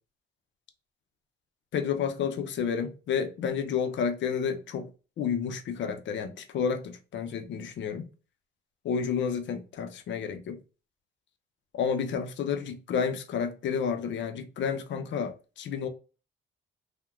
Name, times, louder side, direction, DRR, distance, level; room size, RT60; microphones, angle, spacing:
voice 1, 1.7-4.9 5.2-8.1 8.8-10.6 11.7-15.9, left 6 dB, 65° left, 0.6 m, -30 dB
2.8 x 2.1 x 2.3 m
cardioid pair, 90°, 20 cm